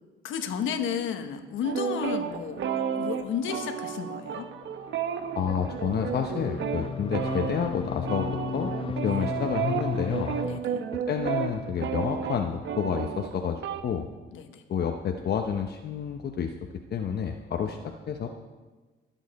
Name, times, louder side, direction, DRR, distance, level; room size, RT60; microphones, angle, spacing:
voice 1, 0.2-2.6 2.9-4.4 9.1-9.2 10.4-10.8 14.3-14.6 17.6-17.7, left 7 dB, 80° left, 6 dB, 1.2 m, -32 dB
sound 1, 1.6-13.8, right 8 dB, 70° right, 0.9 m, -32 dB
sound 2, 3.6-10.6, left 6 dB, 25° left, 0.5 m, -36 dB
voice 2, 5.4-8.7 9.0-10.3 11.1-14.1 14.7-16.5 16.9-18.3, left 7 dB, 55° left, 4 dB, 0.9 m, -29 dB
22.0 x 7.4 x 4.2 m, 1.3 s
cardioid pair, 90°, 20 cm